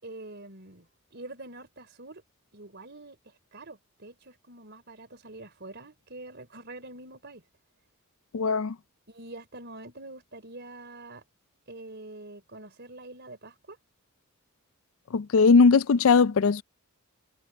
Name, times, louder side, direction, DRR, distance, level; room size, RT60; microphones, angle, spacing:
voice 1, 0.0-2.2 2.5-3.2 3.5-7.4 9.1-11.2 11.7-13.8, right 2 dB, 50° right, 4.4 m, -45 dB
voice 2, 8.3-8.8 15.1-16.6, left 4 dB, 65° left, 0.4 m, -19 dB
head